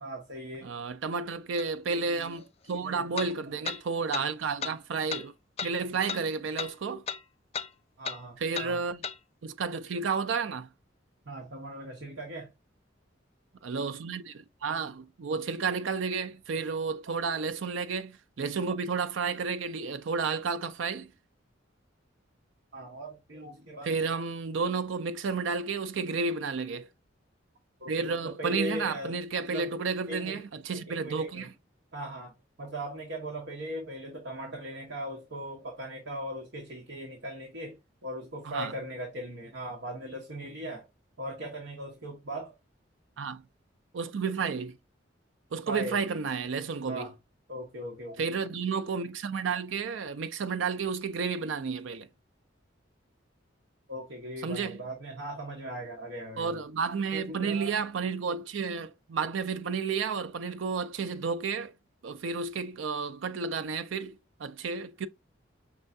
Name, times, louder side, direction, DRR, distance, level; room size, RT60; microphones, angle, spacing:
voice 1, 0.0-0.7 1.9-2.4 2.7-3.1 8.0-8.8 11.3-12.5 22.7-23.9 27.8-29.2 29.5-29.7 30.1-30.4 30.7-31.5 31.9-32.3 32.6-37.7 38.0-40.8 41.2-42.5 45.7-46.0 46.9-47.1 47.5-48.2 53.9-56.6 57.1-57.7, equal, 70° right, 1.1 m, -39 dB
voice 2, 0.6-5.3 5.6-7.1 8.4-9.0 9.4-10.7 13.6-21.1 23.8-26.9 27.9-31.5 38.4-38.8 43.2-43.4 43.9-44.8 45.5-47.1 48.2-52.1 54.4-54.8 56.4-61.7 62.0-65.1, right 5 dB, 90° right, 0.4 m, -31 dB
sound 1, 1.6-1.7 3.2-3.3 3.7-3.8 4.1-4.3 4.6-4.8 5.1-5.2 5.6-5.7 6.1-6.2 6.6-6.7 7.1-7.2 7.5-7.7 8.0-8.2 8.5-8.7 9.0-9.2, left 6 dB, 35° left, 0.4 m, -34 dB
5.5 x 3.3 x 2.6 m
head